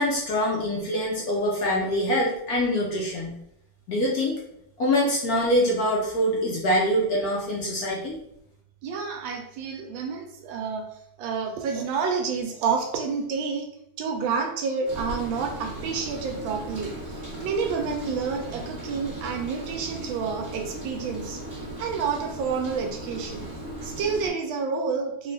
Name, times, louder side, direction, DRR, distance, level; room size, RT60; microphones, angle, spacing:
voice 1, 0.0-3.4 3.9-4.4 4.8-8.2, equal, 65° left, -3 dB, 0.9 m, -24 dB
voice 2, 8.8-10.9 11.2-13.7 14.0-21.4 21.8-23.5 23.8-25.3, right 5 dB, 85° right, 3 dB, 1.4 m, -29 dB
Rain, 14.8-24.3, right 1 dB, 35° right, 1.3 m, -37 dB
3.7 x 2.3 x 3.2 m, 0.76 s
omnidirectional pair, 2.1 m